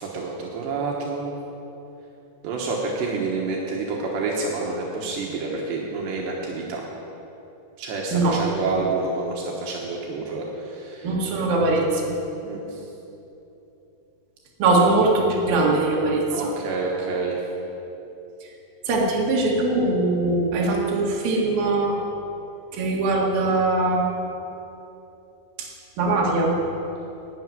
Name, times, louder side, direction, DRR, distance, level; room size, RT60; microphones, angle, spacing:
voice 1, 0.0-1.4 2.4-6.8 7.8-11.2 12.4-12.8 16.3-17.4, right 3 dB, 75° right, -2 dB, 3.3 m, -28 dB
voice 2, 11.0-12.0 14.6-16.2 18.9-22.0 22.7-24.1 25.6-25.7 26.0-26.6, right 2 dB, 60° right, -3 dB, 3.3 m, -21 dB
12.0 x 8.4 x 9.2 m, 3.0 s
omnidirectional pair, 5.0 m